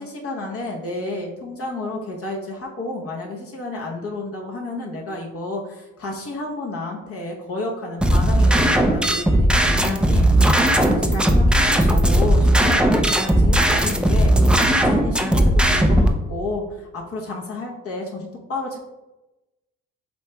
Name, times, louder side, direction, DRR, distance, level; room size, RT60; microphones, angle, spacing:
voice 1, 0.0-18.8, left 2 dB, 50° left, -2 dB, 0.9 m, -31 dB
sound 1, 8.0-16.1, right 1 dB, 5° right, 0.4 m, -17 dB
8.1 x 2.8 x 2.3 m, 1.0 s
cardioid pair, 90°, 30 cm